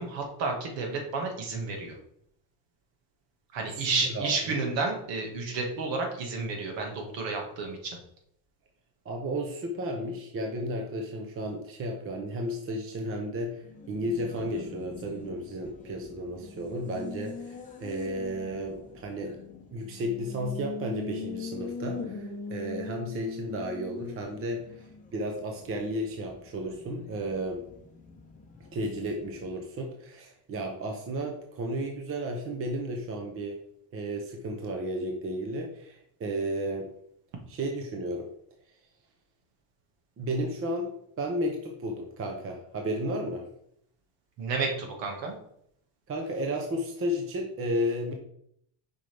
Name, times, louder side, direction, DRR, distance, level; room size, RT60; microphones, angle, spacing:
voice 1, 0.0-2.0 3.5-8.0 44.4-45.4, right 3 dB, 65° right, 2 dB, 1.9 m, -31 dB
voice 2, 3.8-4.6 9.0-19.4 19.7-27.6 28.6-33.6 33.9-36.9 37.5-38.3 40.2-43.5 46.1-48.1, equal, 25° right, 2 dB, 0.8 m, -33 dB
Race car auto racing, 13.5-29.8, left 4 dB, 15° left, 0.8 m, -43 dB
7.2 x 5.5 x 3.4 m, 0.70 s
cardioid pair, 170°, 48 cm